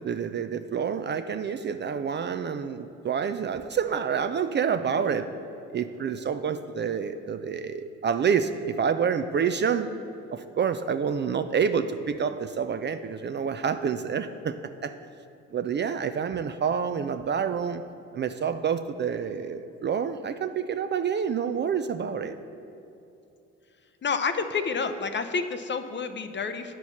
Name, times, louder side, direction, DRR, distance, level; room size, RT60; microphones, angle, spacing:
voice 1, 0.0-5.3 5.7-9.9 10.3-14.6 14.8-14.9 15.5-17.8 18.1-22.4, right 7 dB, 35° right, 9 dB, 0.4 m, -28 dB
voice 2, 24.0-26.8, left 5 dB, 35° left, 9 dB, 0.6 m, -29 dB
9.4 x 4.6 x 5.7 m, 2.7 s
hypercardioid pair, 55°, 33 cm